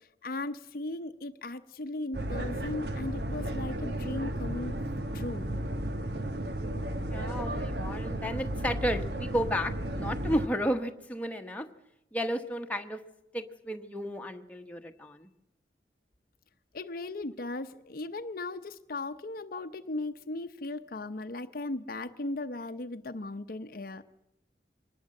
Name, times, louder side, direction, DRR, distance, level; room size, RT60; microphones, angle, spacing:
voice 1, 0.0-4.8 5.1-5.5 16.7-24.0, left 2 dB, 55° left, 9 dB, 0.8 m, -37 dB
sound 1, 2.1-10.5, right 1 dB, 70° right, 1.5 m, -34 dB
voice 2, 7.0-11.7 12.1-13.0 13.3-15.3, equal, 10° left, 4 dB, 1.2 m, -33 dB
24.0 x 19.5 x 7.7 m, 0.85 s
head